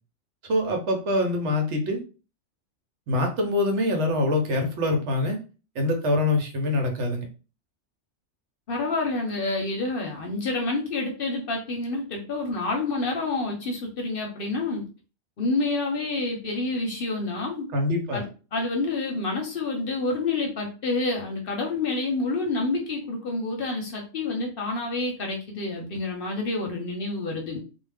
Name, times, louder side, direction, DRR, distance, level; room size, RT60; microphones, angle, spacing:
voice 1, 0.5-2.0 3.1-5.4 5.7-7.2 17.7-18.2, left 1 dB, 70° right, 3 dB, 1.0 m, -24 dB
voice 2, 8.7-14.9 15.4-17.7 18.1-27.6, left 3 dB, 55° left, 1 dB, 0.7 m, -28 dB
2.4 x 2.0 x 3.3 m, 0.34 s
omnidirectional pair, 1.3 m